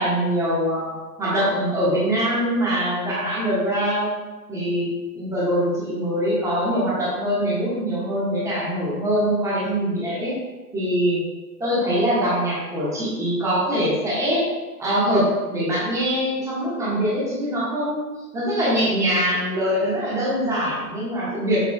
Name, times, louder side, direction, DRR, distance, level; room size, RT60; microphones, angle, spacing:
voice 1, 0.0-4.1 4.5-4.9 5.1-10.3 10.7-11.2 11.6-14.4 14.8-18.0 18.3-21.7, equal, 5° right, -8 dB, 1.6 m, -23 dB
6.5 x 6.5 x 2.4 m, 1.2 s
figure-of-eight pair, 125°, 49 cm